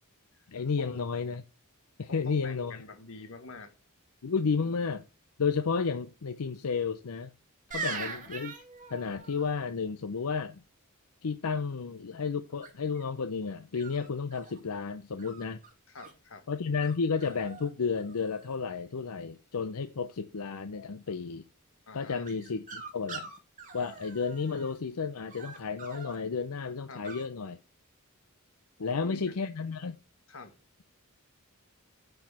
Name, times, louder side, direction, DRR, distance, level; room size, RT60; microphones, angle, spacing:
voice 1, 0.5-1.4 2.0-2.8 4.2-5.1 5.4-7.3 7.7-8.5 8.9-10.6 11.2-15.6 16.5-21.4 21.9-23.3 23.7-27.6 28.8-30.0, left 5 dB, 85° left, 0.6 m, -32 dB
voice 2, 2.1-3.7 7.8-8.0 15.9-16.5 21.9-22.3 26.9-27.1 28.8-29.4 30.3-30.6, left 3 dB, 65° left, 1.5 m, -46 dB
sound 1, 7.7-9.5 12.6-13.0 13.7-14.6 15.2-16.1 16.8-16.9 17.2-17.7 17.9-18.6 22.2-24.8 25.3-26.2 27.0-27.2, right 4 dB, 35° right, 2.3 m, -42 dB
9.6 x 4.7 x 6.0 m
head